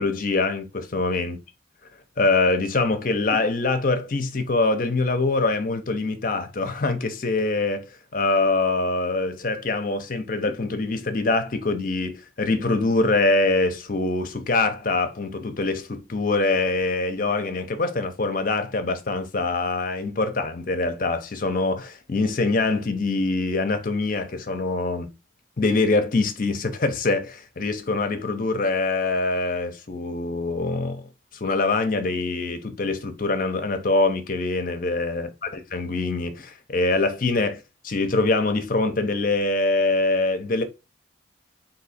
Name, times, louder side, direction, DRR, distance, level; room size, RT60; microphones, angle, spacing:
voice 1, 0.0-1.4 2.2-7.9 8.1-25.1 25.6-31.0 31.4-35.3 35.7-40.6, left 3 dB, 45° left, 0.6 m, -24 dB
3.9 x 2.7 x 4.1 m
head